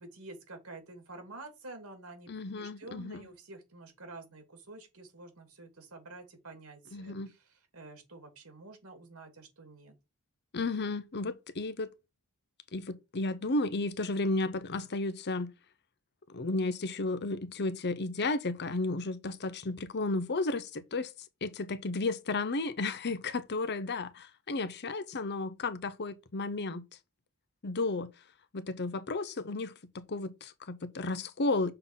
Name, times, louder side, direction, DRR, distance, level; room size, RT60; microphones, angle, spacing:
voice 1, 0.0-2.3 2.6-9.9 23.1-23.2, right 2 dB, 70° right, 2.9 m, -49 dB
voice 2, 2.3-3.3 6.9-7.3 10.5-11.9 12.7-15.5 16.3-21.1 21.4-26.8 27.6-28.1 28.5-31.7, left 2 dB, 50° left, 0.8 m, -33 dB
6.7 x 4.0 x 5.7 m
head